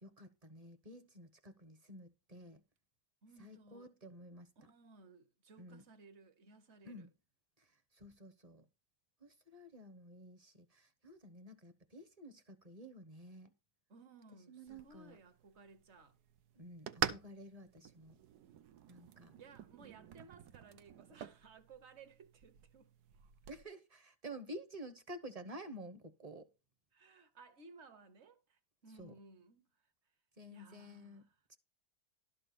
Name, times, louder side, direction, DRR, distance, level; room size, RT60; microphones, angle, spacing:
voice 1, 0.0-2.6 3.4-4.5 5.6-5.8 6.8-7.1 7.6-8.7 9.2-13.5 14.5-15.2 16.5-18.2 18.9-19.3 23.5-26.5 28.9-29.1 30.4-31.6, right 1 dB, 30° right, 0.9 m, -51 dB
voice 2, 3.2-3.9 4.6-7.1 13.9-16.2 19.4-22.9 26.9-29.7 30.5-31.4, right 3 dB, 50° right, 1.2 m, -59 dB
sound 1, 14.7-23.6, right 9 dB, 85° right, 1.3 m, -46 dB
12.0 x 4.1 x 6.8 m
omnidirectional pair, 1.7 m